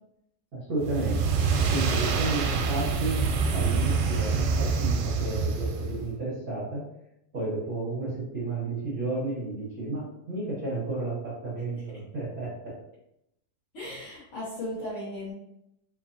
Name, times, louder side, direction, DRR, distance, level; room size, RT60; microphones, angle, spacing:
voice 1, 0.5-1.2 1.7-3.2 3.5-6.8 7.3-12.7, right 2 dB, 75° right, -9 dB, 0.8 m, -32 dB
sound 1, 0.8-6.1, right 5 dB, 90° right, 2.3 m, -26 dB
voice 2, 13.7-15.3, left 1 dB, 70° left, -9 dB, 1.2 m, -36 dB
5.3 x 2.6 x 2.7 m, 0.82 s
omnidirectional pair, 4.0 m